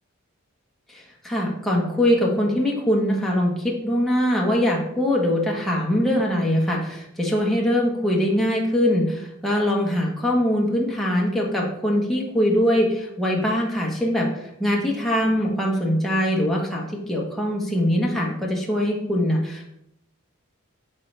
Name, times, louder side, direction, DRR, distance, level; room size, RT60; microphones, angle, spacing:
voice 1, 0.9-19.7, equal, ahead, -3 dB, 1.2 m, -22 dB
11.5 x 3.9 x 3.3 m, 0.79 s
head